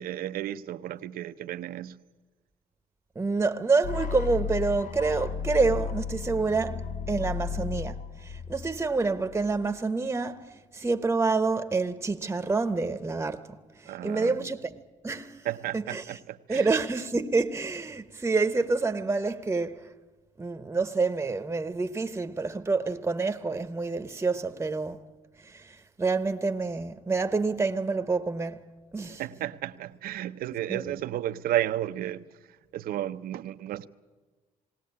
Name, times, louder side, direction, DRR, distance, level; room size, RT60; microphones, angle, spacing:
voice 1, 0.0-2.0 13.9-14.5 15.4-16.7 29.0-32.2 32.7-33.9, right 12 dB, 80° right, 0.7 m, -33 dB
voice 2, 3.1-13.5 13.8-14.8 15.0-15.5 15.7-16.2 16.5-19.9 20.4-25.0 25.4-28.7 28.9-29.2 30.7-30.8, right 3 dB, 15° right, 0.9 m, -28 dB
sound 1, 3.8-9.8, left 6 dB, 60° left, 1.0 m, -34 dB
19.5 x 18.0 x 8.5 m
cardioid pair, 80°, 15 cm